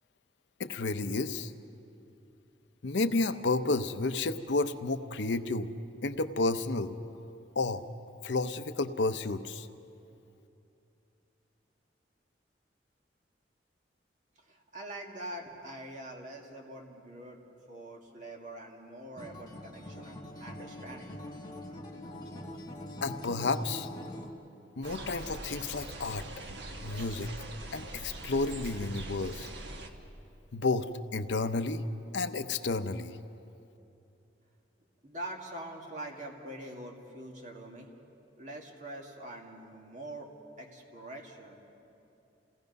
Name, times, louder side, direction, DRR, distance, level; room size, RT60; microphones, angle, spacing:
voice 1, 0.6-1.5 2.8-5.7 6.0-6.9 7.6-7.9 8.2-9.7 23.0-23.9 24.8-26.2 26.8-27.3 27.7-29.5 30.5-31.8 32.1-33.1, left 3 dB, 70° left, 10 dB, 0.7 m, -31 dB
voice 2, 14.5-17.4 17.7-21.2 35.0-37.9 38.4-40.3 40.6-41.6, right 1 dB, 40° right, 1 dB, 2.1 m, -44 dB
Acoustic guitar, 19.2-24.3, left 1 dB, 20° left, 1.5 m, -43 dB
sound 1, 24.8-29.9, right 1 dB, 70° right, 1.3 m, -42 dB
28.5 x 17.5 x 5.4 m, 2.8 s
head